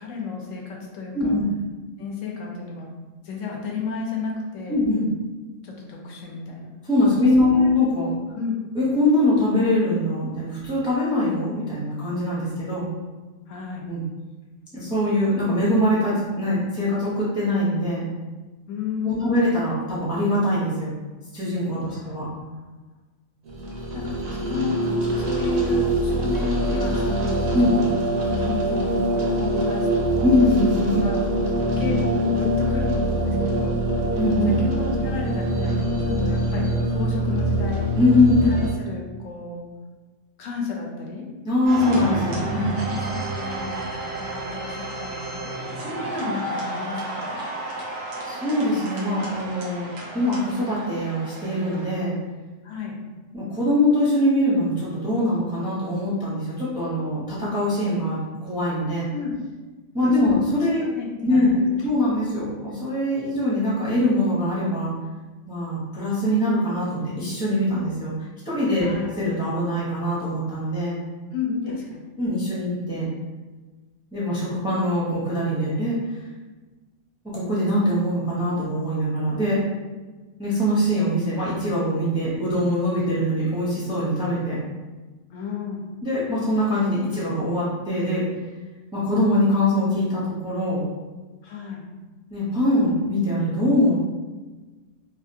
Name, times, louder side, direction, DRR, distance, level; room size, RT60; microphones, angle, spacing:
voice 1, 0.0-1.4 2.0-2.9 3.2-4.8 5.6-6.7 7.4-7.7 8.3-8.6 13.5-13.9 18.7-19.4 21.9-22.7 23.9-24.7 25.2-27.9 28.4-30.2 31.0-31.2 31.6-33.8 34.6-37.8 38.3-39.6 40.4-41.3 42.3-43.9 44.2-47.4 52.6-53.0 59.1-59.3 60.0-60.4 60.8-61.7 68.8-69.1 71.3-72.1 85.3-85.8 91.4-91.8, left 5 dB, 75° left, -1 dB, 0.9 m, -33 dB
voice 2, 1.1-1.4 4.7-5.1 6.8-8.1 8.7-12.9 13.9-14.0 14.7-18.0 19.0-20.9 21.3-22.3 27.5-27.7 30.2-31.3 34.2-34.5 36.1-36.2 38.0-38.5 41.5-42.7 48.2-49.9 50.1-52.1 53.3-59.1 59.9-60.8 61.2-61.5 61.8-64.9 65.5-68.1 68.5-71.0 71.7-71.8 72.2-73.1 74.1-76.0 77.2-79.6 80.4-84.6 86.0-88.3 88.9-90.9 92.3-93.9, left 1 dB, 5° right, -8 dB, 0.5 m, -22 dB
sound 1, 23.5-38.7, right 1 dB, 60° right, 0.7 m, -24 dB
sound 2, 41.7-52.0, right 2 dB, 85° right, 1.1 m, -32 dB
2.8 x 2.4 x 2.6 m, 1.3 s
omnidirectional pair, 1.4 m